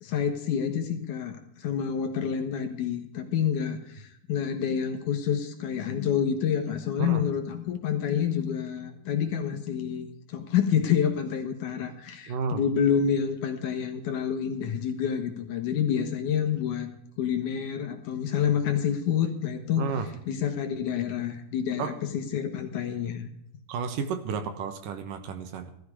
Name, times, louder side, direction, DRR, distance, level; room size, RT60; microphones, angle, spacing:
voice 1, 0.0-16.9 17.2-19.9 20.3-23.3, left 8 dB, 65° left, 6 dB, 2.5 m, -28 dB
voice 2, 12.3-12.6 19.8-20.1 21.8-22.0 23.7-25.7, right 5 dB, 70° right, 9 dB, 2.6 m, -32 dB
17.0 x 13.5 x 4.8 m, 0.75 s
omnidirectional pair, 4.3 m